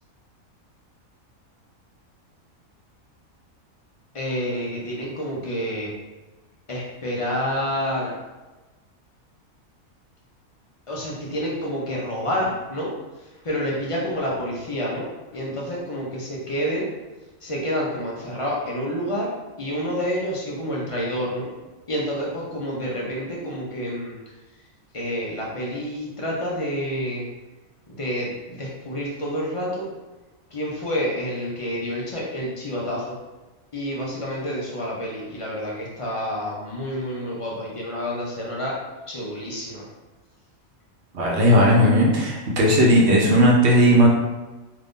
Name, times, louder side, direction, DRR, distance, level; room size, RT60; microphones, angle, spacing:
voice 1, 4.1-5.9 6.7-8.1 10.9-12.9 13.2-15.0 15.3-16.9 17.4-19.3 19.6-21.5 21.9-24.1 24.9-27.2 27.9-29.9 30.5-33.1 33.7-38.7 39.1-39.9, equal, 45° left, -5 dB, 0.4 m, -28 dB
voice 2, 41.1-44.1, equal, 60° right, -2 dB, 0.9 m, -16 dB
2.8 x 2.5 x 3.6 m, 1.2 s
omnidirectional pair, 1.5 m